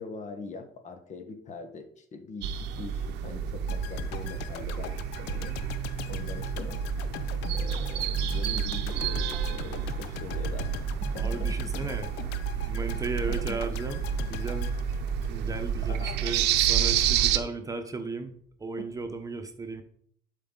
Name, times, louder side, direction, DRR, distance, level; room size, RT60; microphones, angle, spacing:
voice 1, 0.0-5.5 6.1-6.8 7.5-10.7 11.0-11.6 13.1-13.6 15.9-16.3 18.8-18.9, left 4 dB, 45° left, 7 dB, 1.5 m, -42 dB
binaural April evening, 2.4-17.4, right 8 dB, 90° right, 0.7 m, -29 dB
sound 1, 3.7-15.7 16.0-16.2, left 11 dB, 90° left, 0.6 m, -42 dB
voice 2, 11.1-12.1 12.7-14.7 15.3-19.8, right 3 dB, 20° right, 7 dB, 1.1 m, -35 dB
11.0 x 4.9 x 4.0 m, 0.62 s
cardioid pair, 110°, 17 cm